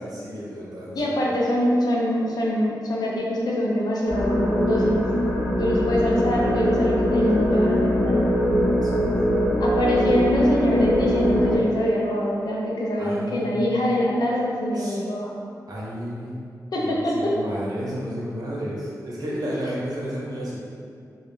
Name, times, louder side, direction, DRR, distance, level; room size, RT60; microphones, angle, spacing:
voice 1, 0.0-1.0 6.0-6.4 8.5-9.3 13.0-13.6 14.7-15.0 15.7-16.4 16.8-20.6, equal, 65° right, -6 dB, 0.6 m, -33 dB
voice 2, 0.9-5.0 5.6-8.3 9.6-15.3 16.7-17.3, left 1 dB, 70° left, -3 dB, 0.5 m, -24 dB
sound 1, 4.1-11.6, equal, 25° left, 0.9 m, -22 dB
2.2 x 2.1 x 3.1 m, 2.4 s
wide cardioid pair, 85°, 7 cm